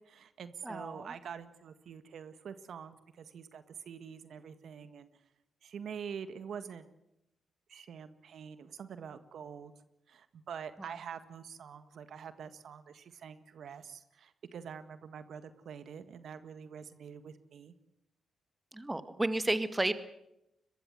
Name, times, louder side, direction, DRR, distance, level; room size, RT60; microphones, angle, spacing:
voice 1, 0.0-5.1 5.6-6.9 7.7-9.7 10.1-17.7, right 7 dB, 70° right, 11 dB, 1.7 m, -46 dB
voice 2, 0.6-1.1 18.7-19.9, right 1 dB, 15° right, 12 dB, 1.8 m, -32 dB
22.0 x 22.0 x 7.8 m, 0.84 s
cardioid pair, 70°, 0 cm